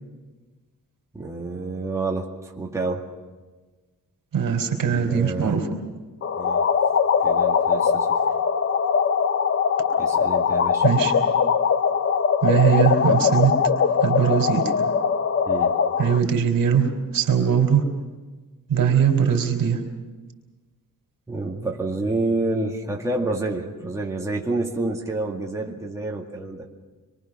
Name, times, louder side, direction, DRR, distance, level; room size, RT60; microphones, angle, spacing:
voice 1, 1.1-3.1 4.8-5.6 6.4-6.7 7.2-8.2 10.0-10.9 15.4-15.8 21.3-26.6, right 2 dB, 10° right, -2 dB, 2.1 m, -28 dB
voice 2, 4.3-5.6 10.8-11.1 12.4-13.5 14.0-14.7 16.0-17.8 18.7-19.8, right 7 dB, 75° right, 4 dB, 3.5 m, -20 dB
sound 1, 6.2-16.2, left 6 dB, 40° left, 0.7 m, -21 dB
25.5 x 23.5 x 6.0 m, 1.3 s
wide cardioid pair, 165°, 34 cm